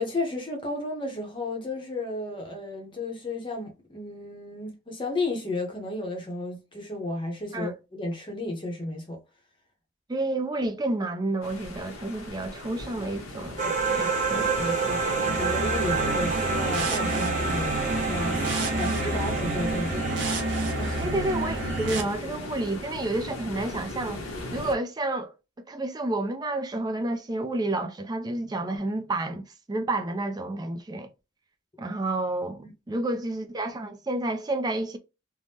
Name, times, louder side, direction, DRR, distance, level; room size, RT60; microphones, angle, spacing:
voice 1, 0.0-9.2 13.6-14.1 14.3-20.0 20.8-21.1 32.6-33.0, left 2 dB, 25° left, 0.7 m, -33 dB
voice 2, 10.1-13.6 14.0-14.4 19.0-19.1 21.0-24.2 24.5-25.3 25.7-31.1 31.8-35.0, right 2 dB, 20° right, 0.3 m, -30 dB
sound 1, 11.4-24.7, left 2 dB, 90° left, 0.9 m, -37 dB
sound 2, 13.6-22.2, right 5 dB, 35° right, 0.9 m, -29 dB
sound 3, 15.2-22.0, right 2 dB, 60° right, 0.7 m, -30 dB
3.4 x 2.0 x 2.7 m
head